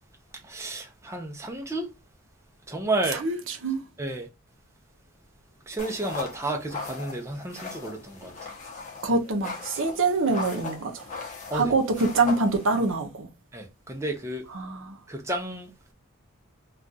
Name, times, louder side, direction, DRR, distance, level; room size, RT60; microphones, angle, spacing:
voice 1, 0.4-1.9 2.7-3.2 4.0-4.3 5.7-8.5 11.5-11.7 13.5-14.4 15.1-15.7, right 2 dB, 10° right, 0.6 m, -31 dB
voice 2, 3.2-3.8 9.0-11.0 11.5-13.3 14.5-15.0, right 3 dB, 60° right, 0.7 m, -25 dB
sound 1, 5.8-13.0, left 4 dB, 35° left, 0.8 m, -39 dB
2.4 x 2.3 x 3.9 m
head